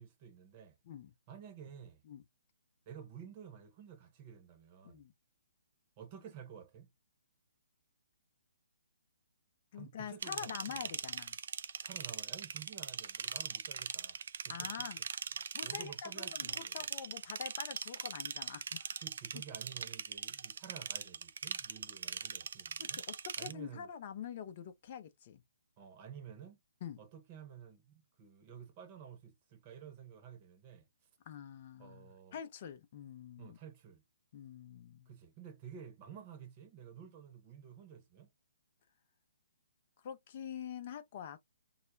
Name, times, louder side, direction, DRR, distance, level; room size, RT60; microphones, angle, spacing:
voice 1, 0.0-0.8 1.3-2.0 2.9-5.0 6.0-6.9 9.7-10.9 11.8-14.2 14.4-14.9 15.3-16.9 19.0-23.0 23.4-23.9 25.8-26.6 27.0-30.9 31.8-32.4 33.4-34.0 35.1-38.3, right 8 dB, 35° right, 0.8 m, -52 dB
voice 2, 9.7-11.4 14.5-15.0 15.5-18.9 22.8-25.4 26.8-27.0 31.3-33.6 34.3-35.1 40.0-41.4, left 8 dB, 45° left, 0.5 m, -46 dB
sound 1, 10.2-23.5, right 6 dB, 65° right, 0.3 m, -41 dB
2.4 x 2.1 x 3.1 m
hypercardioid pair, 145°, 0 cm